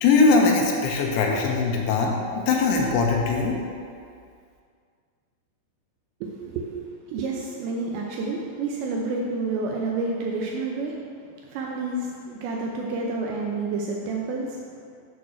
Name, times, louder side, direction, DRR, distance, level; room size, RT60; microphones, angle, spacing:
voice 1, 0.0-3.6, left 4 dB, 80° left, 0 dB, 3.3 m, -21 dB
voice 2, 6.2-6.7 7.1-10.9 11.5-14.5, right 3 dB, 80° right, -1 dB, 2.6 m, -29 dB
7.9 x 4.1 x 6.2 m, 2.2 s
omnidirectional pair, 5.6 m